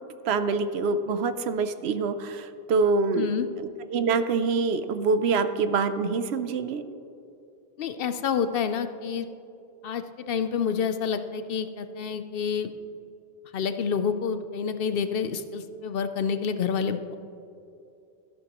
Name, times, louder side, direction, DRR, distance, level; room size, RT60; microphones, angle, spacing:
voice 1, 0.3-3.3 3.6-6.8, right 4 dB, 80° right, 10 dB, 0.9 m, -25 dB
voice 2, 3.2-3.5 7.8-9.3 9.8-12.7 13.5-17.2, left 6 dB, 65° left, 10 dB, 0.7 m, -28 dB
13.5 x 11.0 x 3.0 m, 2.7 s
omnidirectional pair, 1.1 m